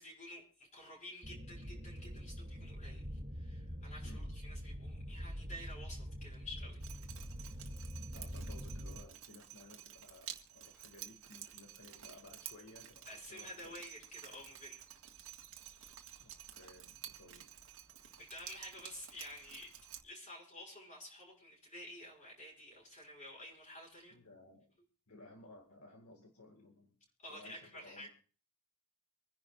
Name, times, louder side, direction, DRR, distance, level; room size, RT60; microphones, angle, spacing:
voice 1, 0.0-6.9 13.1-14.8 18.2-19.7 20.0-24.2 27.2-28.1, left 1 dB, 35° left, -4 dB, 6.0 m, -51 dB
sound 1, 1.2-9.0, equal, 45° right, 2.4 m, -45 dB
Drip, 6.8-20.0, right 11 dB, 70° right, 1.7 m, -52 dB
voice 2, 8.1-13.8 16.2-17.5 24.1-24.7 25.1-27.0 27.3-28.1, left 2 dB, 80° left, 2 dB, 2.2 m, -58 dB
26.0 x 10.5 x 2.5 m, 0.40 s
head